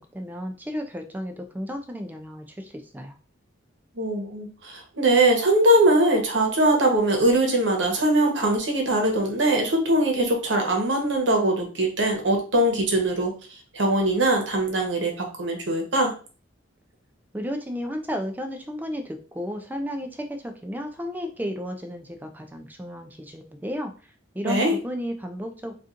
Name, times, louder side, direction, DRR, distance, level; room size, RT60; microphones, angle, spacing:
voice 1, 0.0-3.2 17.3-23.9 24.3-25.7, equal, 10° right, 5 dB, 0.4 m, -33 dB
voice 2, 4.0-13.3 13.7-16.1 24.4-24.7, right 1 dB, 65° right, 2 dB, 1.0 m, -21 dB
4.1 x 2.5 x 2.5 m, 0.36 s
head